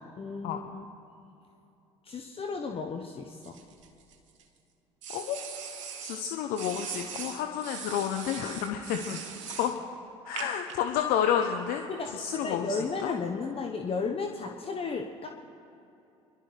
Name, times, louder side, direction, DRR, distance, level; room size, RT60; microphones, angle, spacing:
voice 1, 0.1-0.9 2.0-3.6 11.9-15.3, left 4 dB, 35° left, 2 dB, 1.2 m, -34 dB
sound 1, 3.4-4.4 5.0-6.2 6.6-9.8 10.4-10.7, right 7 dB, 85° right, 1.1 m, -40 dB
voice 2, 6.0-9.2 9.6-9.8 10.3-11.8 12.1-12.7 13.0-13.1, left 9 dB, 65° left, 5 dB, 0.8 m, -30 dB
27.5 x 12.0 x 3.4 m, 2.8 s
hypercardioid pair, 60°, 16 cm